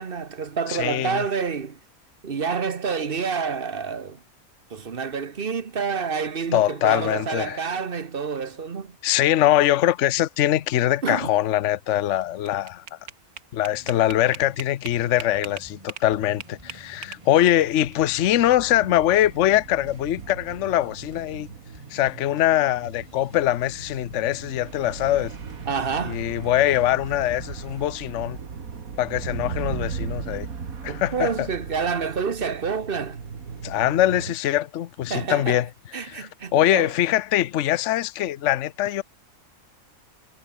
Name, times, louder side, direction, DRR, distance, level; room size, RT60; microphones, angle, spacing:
voice 1, 0.0-1.8 2.2-4.2 4.7-9.0 11.0-11.3 25.7-26.2 30.9-33.2 35.1-35.6 35.9-36.9, right 5 dB, 40° right, 1.4 m, -28 dB
voice 2, 0.7-1.2 6.5-7.6 9.0-12.8 13.5-21.5 21.9-25.3 26.1-28.4 29.0-30.5 30.8-31.5 33.6-35.7 36.0-39.0, left 13 dB, 60° left, 1.0 m, -22 dB
sound 1, 12.2-16.1 16.4-17.9, right 8 dB, 90° right, 1.8 m, -39 dB
sound 2, 13.7-27.9, right 1 dB, 20° right, 5.9 m, -49 dB
sound 3, 17.5-34.3, right 5 dB, 70° right, 2.3 m, -37 dB
omnidirectional pair, 1.5 m